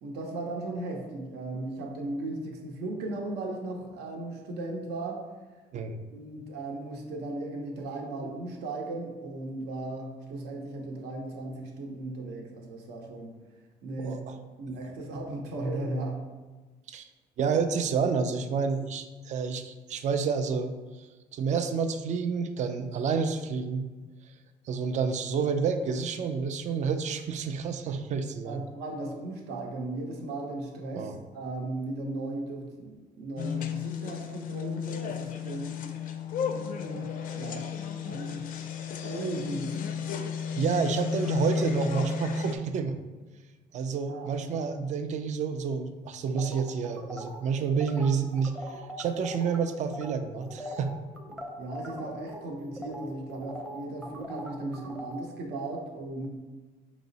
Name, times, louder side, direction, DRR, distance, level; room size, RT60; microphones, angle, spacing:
voice 1, 0.0-5.2 6.1-13.4 13.8-14.2 14.6-16.2 28.4-35.8 36.4-37.7 38.0-38.5 39.0-39.9 44.1-44.5 51.3-56.3, right 2 dB, 80° right, 1 dB, 0.8 m, -36 dB
voice 2, 14.0-14.4 16.9-17.1 17.4-21.1 21.3-23.8 24.7-28.6 31.0-31.2 40.6-43.0 43.7-50.9, right 5 dB, 45° right, 8 dB, 0.4 m, -29 dB
sound 1, 33.4-42.6, left 6 dB, 55° left, 0.4 m, -33 dB
sound 2, 46.3-49.6 49.9-50.1 50.4-55.2, equal, 5° right, 0.6 m, -41 dB
4.8 x 2.0 x 3.9 m, 1.3 s
cardioid pair, 110°, 17 cm